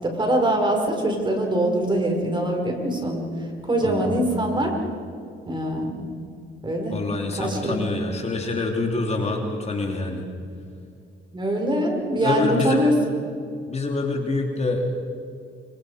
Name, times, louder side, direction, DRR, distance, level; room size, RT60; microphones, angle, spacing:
voice 1, 0.0-3.2 3.7-4.7 5.5-6.0 6.6-6.9 7.3-7.9 11.3-12.9, right 1 dB, 25° right, 2 dB, 5.2 m, -23 dB
voice 2, 3.8-4.8 6.9-10.2 12.2-12.9 13.7-15.0, left 3 dB, 35° left, 2 dB, 2.8 m, -26 dB
25.0 x 24.5 x 5.0 m, 2.5 s
cardioid pair, 90°, 20 cm